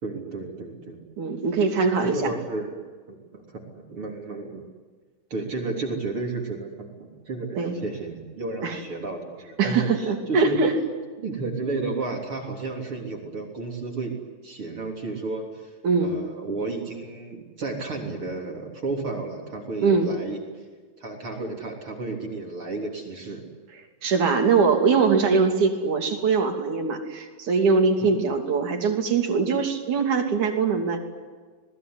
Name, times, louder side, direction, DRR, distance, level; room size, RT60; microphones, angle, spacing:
voice 1, 0.0-1.0 2.0-2.8 3.3-3.6 3.9-4.7 5.3-10.6 11.2-14.1 14.4-15.7 16.0-20.4 21.0-23.4 28.0-28.3, right 3 dB, 40° right, 1 dB, 4.1 m, -32 dB
voice 2, 1.2-2.3 7.6-7.8 8.6-8.8 9.6-10.8 15.8-16.2 19.8-20.1 24.0-31.0, right 4 dB, 60° right, 4 dB, 4.3 m, -22 dB
28.0 x 20.0 x 9.7 m, 1.4 s
omnidirectional pair, 4.1 m